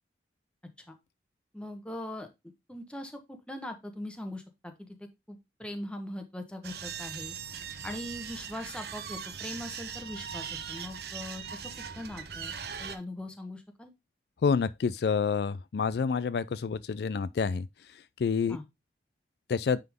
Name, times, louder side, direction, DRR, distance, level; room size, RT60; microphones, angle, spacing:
voice 1, 1.5-2.3 2.7-4.9 5.3-7.3 7.8-12.5 12.8-13.9 18.5-18.6, left 1 dB, 5° left, 1.1 m, -41 dB
sound 1, 6.6-13.0, right 7 dB, 60° right, 0.8 m, -40 dB
voice 2, 14.4-18.6 19.5-19.8, left 5 dB, 65° left, 0.4 m, -28 dB
9.4 x 3.7 x 3.5 m
head